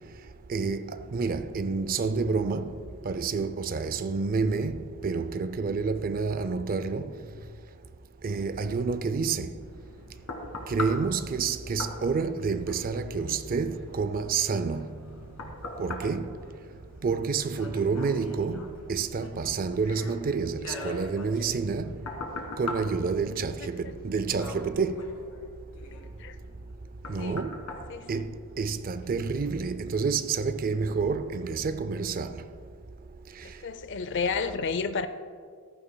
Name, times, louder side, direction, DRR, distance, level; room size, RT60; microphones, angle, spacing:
voice 1, 0.5-2.7 3.0-7.1 8.2-9.5 10.7-14.9 15.8-16.4 17.0-22.0 22.6-25.1 27.1-27.6 28.1-28.3 28.6-32.4, right 4 dB, 40° right, 0.4 m, -29 dB
sound 1, 9.6-28.9 29.4-29.5, left 2 dB, 75° left, 1.8 m, -42 dB
voice 2, 23.6-23.9 26.2-26.4 27.2-27.4 27.9-28.1 33.4-35.1, left 5 dB, 55° left, 0.5 m, -31 dB
14.5 x 13.0 x 2.2 m
head